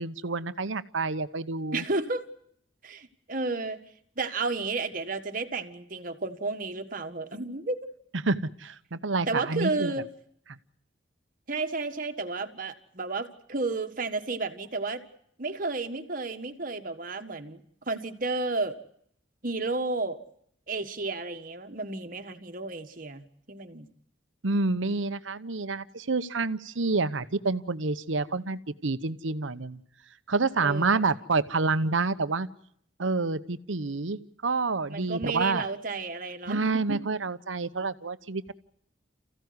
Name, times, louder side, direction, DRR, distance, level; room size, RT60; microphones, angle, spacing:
voice 1, 0.0-1.8 8.2-9.9 24.4-29.8 30.3-32.5 33.0-35.6 36.5-38.5, right 3 dB, 90° right, 13 dB, 1.0 m, -28 dB
voice 2, 1.7-2.2 2.8-3.8 4.2-7.8 9.3-10.1 11.5-15.0 15.4-17.6 17.9-18.8 19.4-20.2 20.7-23.9 30.6-31.0 34.9-37.0, right 3 dB, 45° right, 6 dB, 1.7 m, -32 dB
28.5 x 15.5 x 9.7 m, 0.69 s
head